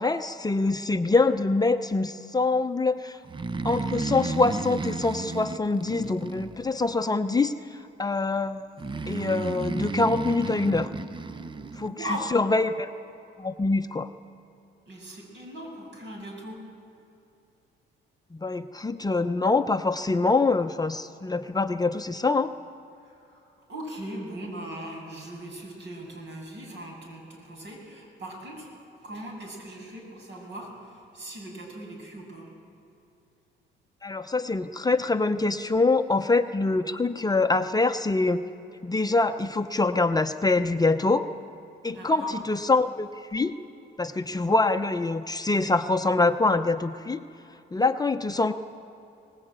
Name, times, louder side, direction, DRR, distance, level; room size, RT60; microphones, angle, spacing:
voice 1, 0.0-3.2 3.6-7.5 8.0-8.7 9.1-10.9 11.8-12.9 13.4-14.1 18.4-22.5 34.0-38.4 38.8-41.3 41.8-43.5 44.0-47.2 47.7-48.5, left 3 dB, 20° left, 7 dB, 0.7 m, -24 dB
Breathing, 3.2-7.0 8.8-11.9, right 3 dB, 25° right, 0.7 m, -33 dB
voice 2, 11.8-12.3 14.9-16.6 23.0-23.4 23.7-28.7 29.0-32.5 41.9-42.3, right 1 dB, 65° right, 0 dB, 7.8 m, -39 dB
21.0 x 19.5 x 9.0 m, 2.7 s
cardioid pair, 90°, 20 cm